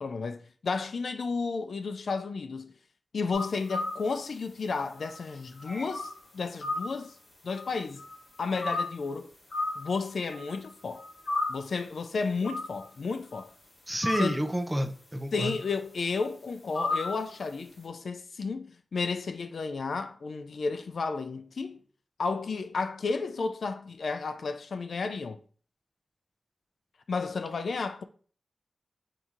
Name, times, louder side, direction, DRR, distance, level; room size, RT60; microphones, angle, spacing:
voice 1, 0.0-2.7 3.1-7.2 7.4-8.0 8.4-9.3 9.8-11.0 11.5-13.5 14.2-14.5 15.3-21.8 22.2-25.4 27.1-28.0, left 4 dB, 80° left, 0.3 m, -32 dB
sound 1, 3.3-4.1 5.0-6.1 6.6-7.0 7.5-8.8 9.5-10.0 10.3-10.7 11.0-11.5 12.4-12.9 13.3-13.4 14.0-14.4 15.4-15.7 16.1-16.2 16.7-17.2, left 2 dB, 60° left, 1.6 m, -33 dB
voice 2, 13.9-15.5, right 1 dB, 10° right, 0.6 m, -30 dB
4.5 x 2.7 x 3.7 m
wide cardioid pair, 120°, 0 cm